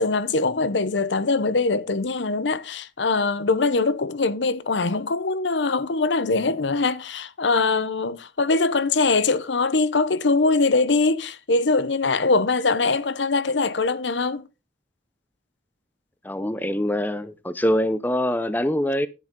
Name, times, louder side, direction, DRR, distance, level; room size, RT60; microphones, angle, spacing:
voice 1, 0.0-14.5, left 3 dB, 80° left, 0.8 m, -22 dB
voice 2, 16.2-19.1, equal, 10° left, 0.6 m, -24 dB
11.0 x 10.0 x 3.7 m
head